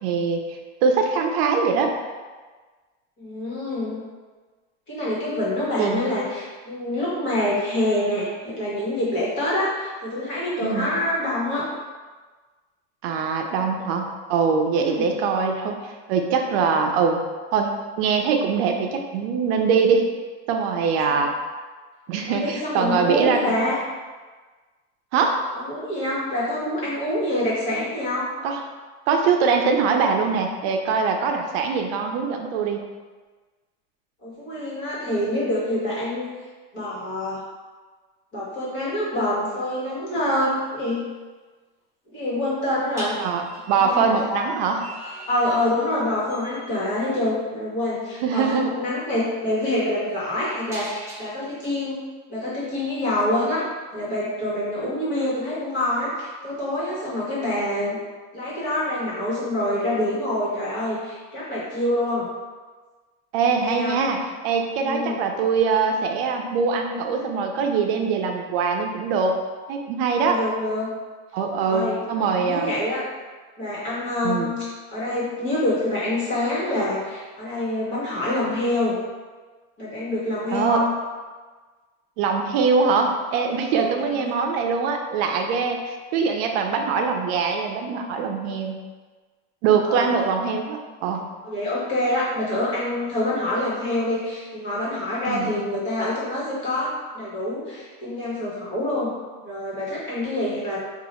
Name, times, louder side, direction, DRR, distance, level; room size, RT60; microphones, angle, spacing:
voice 1, 0.0-1.9 5.8-6.0 10.6-10.9 13.0-17.2 17.5-17.7 18.0-20.1 20.5-21.3 22.1-23.6 25.1-25.4 28.4-28.6 29.1-32.8 43.2-43.4 43.7-44.8 48.2-48.7 63.3-69.4 69.7-70.4 71.3-72.7 74.2-74.5 80.5-80.8 82.2-88.8 89.6-91.2 95.3-95.5, right 5 dB, 75° right, 3 dB, 0.5 m, -23 dB
voice 2, 3.2-4.0 4.9-11.6 14.7-15.1 21.1-21.2 22.3-23.8 25.5-28.3 34.2-36.3 36.7-37.4 38.3-41.1 42.1-43.2 43.8-44.4 45.3-52.0 52.3-53.6 53.9-58.0 58.3-62.3 63.6-64.0 64.8-65.2 70.0-70.9 71.7-72.0 72.4-73.0 73.6-79.0 79.8-80.9 83.7-84.3 89.8-90.1 91.4-99.1 99.4-100.8, left 1 dB, 40° left, -8 dB, 1.4 m, -26 dB
sound 1, 40.3-40.6 42.9-46.0 46.3-46.7 48.2-48.4 48.8-51.7, right 1 dB, 10° right, 1.0 m, -42 dB
2.7 x 2.4 x 4.2 m, 1.4 s
cardioid pair, 155°, 31 cm